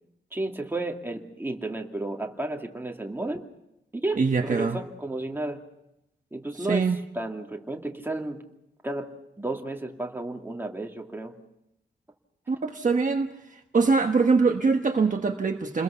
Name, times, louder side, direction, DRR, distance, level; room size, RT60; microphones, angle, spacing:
voice 1, 0.3-3.5 3.9-5.6 6.3-8.4 8.8-9.1 9.4-11.3, right 2 dB, 10° right, 1 dB, 2.5 m, -32 dB
voice 2, 4.2-4.8 6.7-7.0 12.5-13.3 13.7-15.8, right 4 dB, 45° right, 3 dB, 1.2 m, -23 dB
29.5 x 21.5 x 5.8 m, 0.87 s
wide cardioid pair, 150°, 19 cm